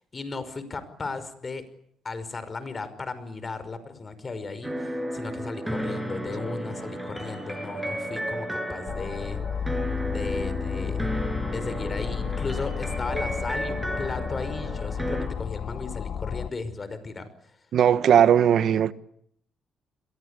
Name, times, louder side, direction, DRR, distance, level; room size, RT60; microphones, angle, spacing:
voice 1, 0.1-1.6 2.0-9.4 9.7-9.8 10.1-11.1 11.5-17.3, left 3 dB, 35° left, 5.5 m, -35 dB
sound 1, 4.6-15.3, equal, 5° right, 6.5 m, -33 dB
sound 2, 8.9-16.5, left 7 dB, 60° left, 1.2 m, -32 dB
voice 2, 17.7-18.9, right 9 dB, 65° right, 1.3 m, -18 dB
29.0 x 22.5 x 8.4 m
cardioid pair, 90°, 0 cm